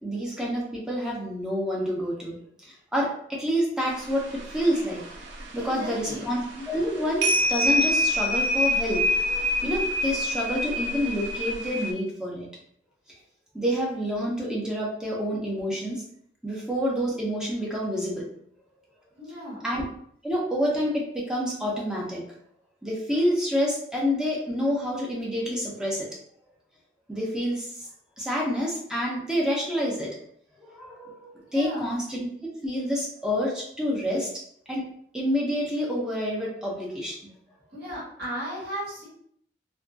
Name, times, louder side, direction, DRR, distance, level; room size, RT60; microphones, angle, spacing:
voice 1, 0.0-2.4 2.6-5.0 5.5-6.4 6.7-12.5 13.5-16.0 16.4-18.3 19.6-19.8 20.2-22.2 22.8-26.1 27.1-27.7 28.2-30.1 30.6-32.3 32.6-34.3 34.7-34.8 35.1-37.3, equal, 5° right, -4 dB, 0.6 m, -28 dB
sound 1, 3.9-4.7 5.0-5.4 5.7-5.9 6.6-6.9 7.2-11.9, left 1 dB, 90° right, 0.5 m, -25 dB
voice 2, 5.6-6.3 19.2-19.6 31.5-31.9 37.7-39.1, equal, 65° right, -7 dB, 1.3 m, -35 dB
2.5 x 2.2 x 2.5 m, 0.66 s
head